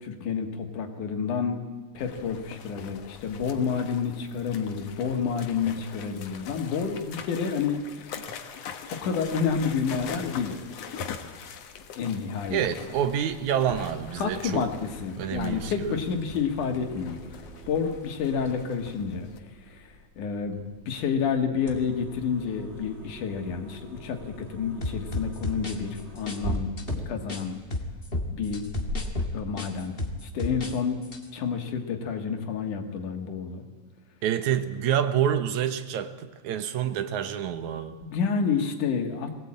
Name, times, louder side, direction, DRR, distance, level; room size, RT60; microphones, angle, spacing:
voice 1, 0.0-1.6 1.9-8.3 8.9-10.6 12.0-12.6 14.2-17.3 17.7-19.3 19.6-26.7 27.1-27.6 28.3-28.6 29.3-30.0 30.2-31.0 31.3-33.6 38.1-39.3, left 6 dB, 85° left, 5 dB, 3.4 m, -29 dB
sound 1, 2.0-19.4, left 7 dB, 60° left, 2.3 m, -43 dB
sound 2, 12.5-29.3, right 1 dB, 20° right, 3.4 m, -43 dB
voice 2, 12.5-14.6 15.2-16.0 34.2-38.0, right 9 dB, 75° right, 10 dB, 2.5 m, -27 dB
sound 3, 24.8-27.4 27.7-30.8 31.0-31.2, left 2 dB, 25° left, 1.4 m, -31 dB
22.0 x 17.5 x 8.8 m, 1.4 s
omnidirectional pair, 3.5 m